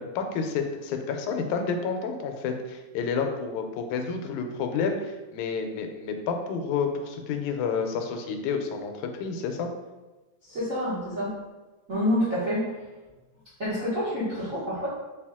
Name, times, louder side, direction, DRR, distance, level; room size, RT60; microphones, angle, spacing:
voice 1, 0.0-8.9 9.2-9.7, left 5 dB, 90° left, 5 dB, 2.0 m, -30 dB
voice 2, 10.5-11.4 11.9-12.8 13.6-14.9, equal, 60° right, -11 dB, 0.8 m, -27 dB
4.6 x 2.7 x 3.5 m, 1.1 s
omnidirectional pair, 3.3 m